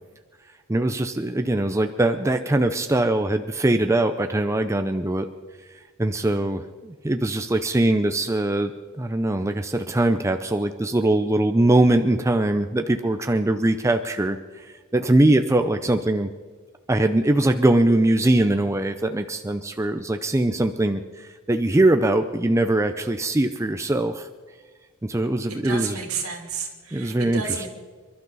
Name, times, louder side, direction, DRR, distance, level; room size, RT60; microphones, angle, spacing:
voice 1, 0.7-5.3 6.0-8.7 9.0-16.3 16.9-24.3 25.0-26.0 26.9-27.7, right 1 dB, 15° right, 7 dB, 0.5 m, -22 dB
voice 2, 25.5-27.7, right 5 dB, 70° right, 2 dB, 2.8 m, -31 dB
28.0 x 12.0 x 4.0 m, 1.5 s
head